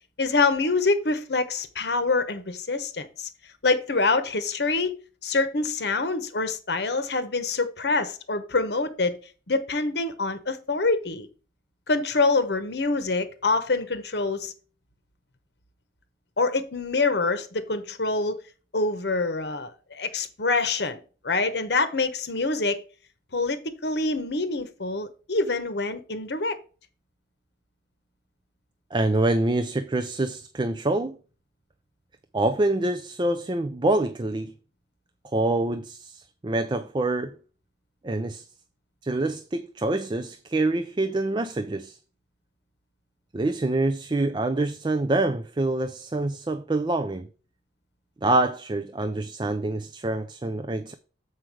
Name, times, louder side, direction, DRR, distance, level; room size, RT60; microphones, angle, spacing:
voice 1, 0.2-3.3 3.6-4.9 5.2-9.1 9.5-11.3 11.9-14.5 16.4-18.4 18.7-22.8 23.3-26.6, left 3 dB, 70° left, 1.0 m, -25 dB
voice 2, 28.9-31.2 32.3-34.5 35.2-37.4 38.0-38.5 39.0-42.0 43.3-47.3 48.2-50.9, right 2 dB, 25° right, 0.4 m, -26 dB
7.7 x 4.7 x 4.7 m
head